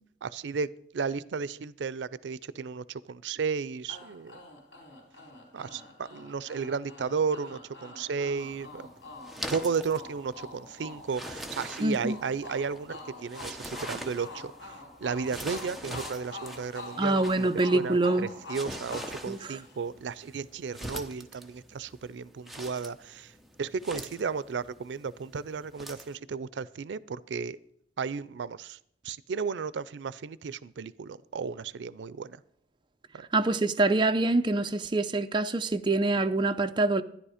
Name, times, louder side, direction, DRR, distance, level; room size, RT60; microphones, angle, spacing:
voice 1, 0.2-0.7 0.9-4.4 5.5-8.9 9.5-14.7 15.0-23.3 23.6-27.6 28.0-28.8 29.0-32.4 33.1-33.3, right 5 dB, 90° right, 0.4 m, -34 dB
sound 1, 3.9-20.1, left 3 dB, 80° left, 3.9 m, -46 dB
sound 2, 8.4-26.2, right 1 dB, ahead, 0.8 m, -44 dB
voice 2, 11.8-12.2 17.0-18.3 19.3-19.6 33.3-37.0, right 2 dB, 25° right, 0.5 m, -25 dB
13.0 x 10.5 x 4.9 m
head